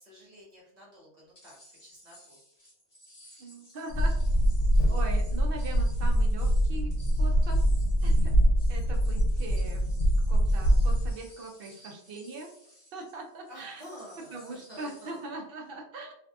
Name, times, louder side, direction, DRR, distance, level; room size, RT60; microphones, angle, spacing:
voice 1, 0.0-1.5 1.8-2.4 13.5-15.3, equal, 40° right, -5 dB, 1.2 m, -49 dB
sound 1, 1.3-15.3, equal, 25° left, 0.8 m, -56 dB
voice 2, 3.4-4.1 4.9-6.9 7.2-7.6 8.0-8.4 8.7-9.8 10.3-12.5 12.9-13.8 14.3-16.1, right 3 dB, 60° right, 2 dB, 0.7 m, -41 dB
sound 2, 3.9-11.1, equal, 85° left, 0.9 m, -24 dB
2.6 x 2.4 x 2.3 m, 0.72 s
omnidirectional pair, 1.2 m